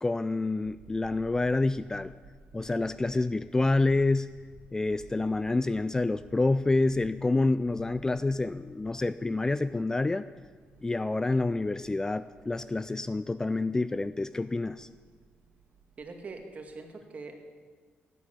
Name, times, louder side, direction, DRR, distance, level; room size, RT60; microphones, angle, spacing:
voice 1, 0.0-2.1 2.5-4.3 4.7-10.3 10.8-14.9, left 2 dB, 15° left, 14 dB, 0.4 m, -28 dB
sound 1, 0.6-16.8, right 5 dB, 85° right, 2.6 m, -56 dB
voice 2, 16.0-17.4, right 3 dB, 40° right, 4 dB, 2.4 m, -43 dB
17.0 x 8.2 x 8.6 m, 1.5 s
cardioid pair, 105°, 4 cm